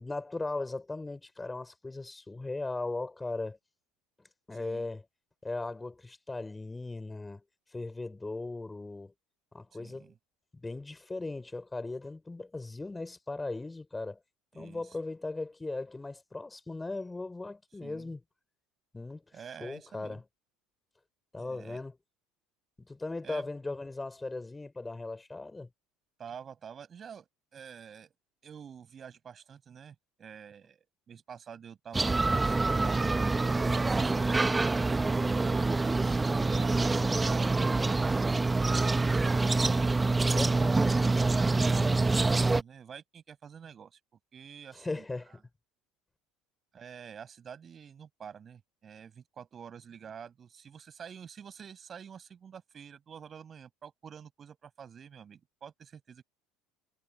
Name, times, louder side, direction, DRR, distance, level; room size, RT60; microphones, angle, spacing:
voice 1, 0.0-3.6 4.5-5.0 5.4-7.4 7.7-9.1 9.5-10.1 10.6-14.2 14.5-18.2 18.9-19.2 19.6-20.2 21.3-21.9 22.9-25.7 40.3-40.8 44.7-45.4, left 2 dB, 15° left, 5.9 m, -38 dB
voice 2, 4.5-4.9 9.7-10.1 14.5-14.9 17.8-18.1 19.3-20.2 21.4-21.8 23.2-23.5 26.2-28.1 28.4-33.1 33.8-36.2 36.5-38.9 39.8-44.0 44.3-45.0 45.3-45.4 46.7-56.2, right 7 dB, 35° right, 6.4 m, -48 dB
sound 1, 31.9-42.6, right 3 dB, 15° right, 1.1 m, -26 dB
hypercardioid pair, 65°, 0 cm